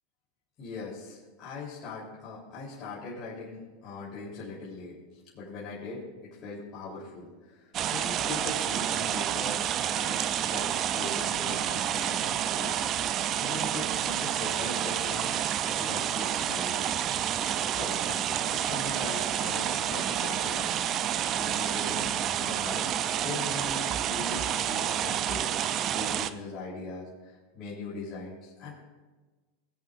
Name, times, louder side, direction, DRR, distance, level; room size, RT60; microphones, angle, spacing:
voice 1, 0.6-5.0 5.3-6.0 6.4-9.6 9.9-15.4 15.6-17.0 17.6-25.5 25.9-28.7, left 3 dB, 35° left, -8 dB, 3.8 m, -40 dB
sound 1, 7.7-26.3, right 10 dB, 35° right, 0.5 m, -29 dB
20.5 x 8.8 x 2.6 m, 1.3 s
supercardioid pair, 130°, 0 cm